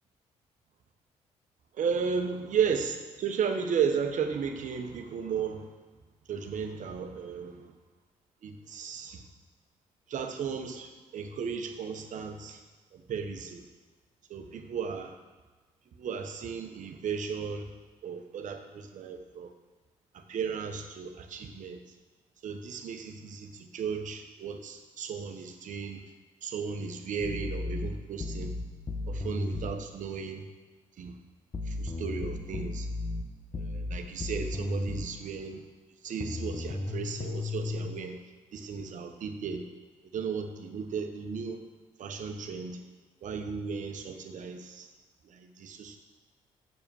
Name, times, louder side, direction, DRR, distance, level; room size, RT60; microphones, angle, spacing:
voice 1, 1.7-5.7 6.3-7.7 8.4-9.2 10.1-12.6 12.9-13.7 14.3-15.1 16.0-17.7 18.0-19.5 20.1-21.8 22.4-26.0 26.4-28.5 29.1-30.4 31.0-31.2 31.6-32.9 33.5-35.6 36.0-38.2 38.5-39.6 40.1-41.6 42.0-42.8 43.2-44.9 45.2-46.0, right 6 dB, 65° right, 6 dB, 1.1 m, -34 dB
sound 1, 27.2-29.8 31.5-35.2 36.2-37.9, left 2 dB, 35° left, 1.1 m, -34 dB
7.0 x 6.8 x 7.1 m, 1.3 s
supercardioid pair, 60°, 14 cm